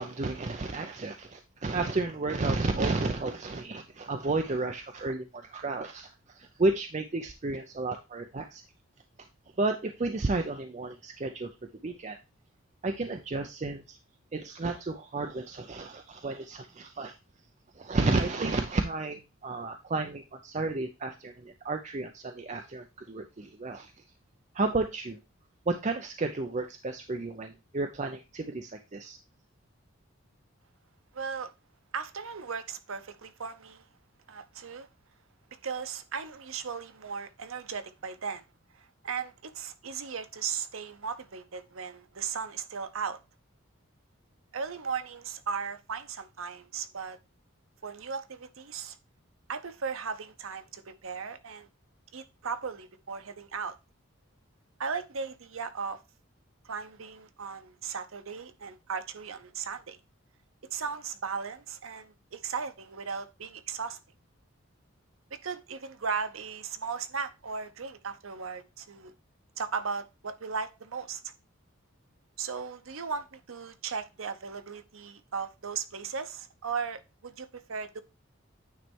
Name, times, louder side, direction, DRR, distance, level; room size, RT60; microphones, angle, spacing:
voice 1, 0.0-6.1 6.4-8.6 9.6-11.5 11.8-12.2 12.8-14.0 14.3-17.1 17.8-23.9 24.5-25.2 25.7-29.2, right 3 dB, 35° right, 0.5 m, -32 dB
voice 2, 31.1-31.5 31.9-33.9 34.3-34.9 35.5-38.4 38.7-43.2 44.5-47.2 47.8-49.0 49.5-51.7 52.1-53.8 54.8-56.0 56.6-60.0 60.7-64.0 65.3-69.1 69.6-71.3 72.4-78.0, right 5 dB, 85° right, 0.8 m, -37 dB
9.2 x 3.2 x 4.4 m
head